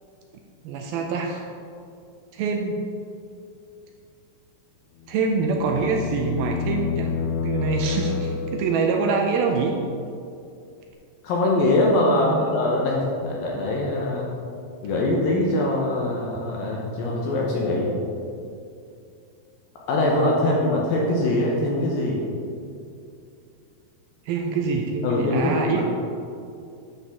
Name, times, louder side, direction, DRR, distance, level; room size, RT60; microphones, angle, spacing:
voice 1, 0.6-1.4 2.3-2.8 5.1-7.1 7.4-9.8 12.1-12.5 24.3-25.8, right 4 dB, 85° right, 2 dB, 2.2 m, -25 dB
sound 1, 5.0-8.9, left 6 dB, 90° left, 2.8 m, -29 dB
voice 2, 11.2-14.3 14.8-17.9 19.9-22.2 25.0-25.8, left 1 dB, 70° left, -2 dB, 2.4 m, -22 dB
10.5 x 7.0 x 3.6 m, 2.5 s
omnidirectional pair, 4.8 m